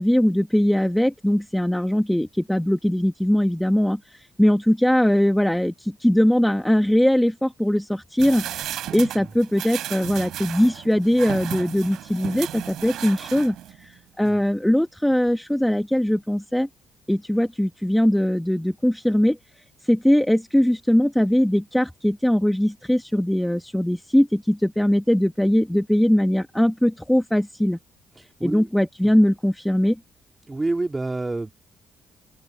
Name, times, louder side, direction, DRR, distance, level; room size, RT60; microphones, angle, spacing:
voice 1, 0.0-16.7 17.1-19.4 19.8-27.8 28.4-30.0, equal, 5° left, 1.2 m, -21 dB
sound 1, 8.2-13.8 14.2-14.3, right 12 dB, 80° right, 5.6 m, -34 dB
voice 2, 30.5-31.5, right 2 dB, 20° right, 2.7 m, -27 dB
cardioid pair, 90°, 0 cm